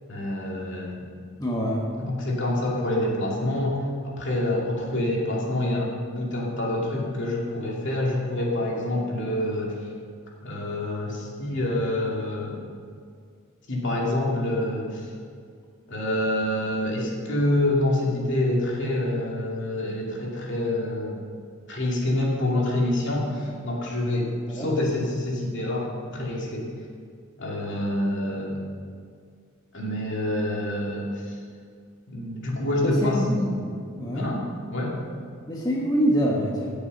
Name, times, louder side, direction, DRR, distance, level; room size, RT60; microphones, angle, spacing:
voice 1, 0.1-1.0 2.0-9.8 10.4-12.6 13.7-15.1 15.9-21.1 21.7-26.7 27.4-28.6 29.7-31.3 32.1-33.2 34.1-34.4 34.7-35.0, left 1 dB, 60° left, -3 dB, 2.7 m, -27 dB
voice 2, 1.4-1.8 24.5-24.7 32.8-33.7 34.0-34.3 35.5-36.7, equal, 20° left, -3 dB, 1.3 m, -25 dB
17.0 x 7.0 x 5.4 m, 2.1 s
head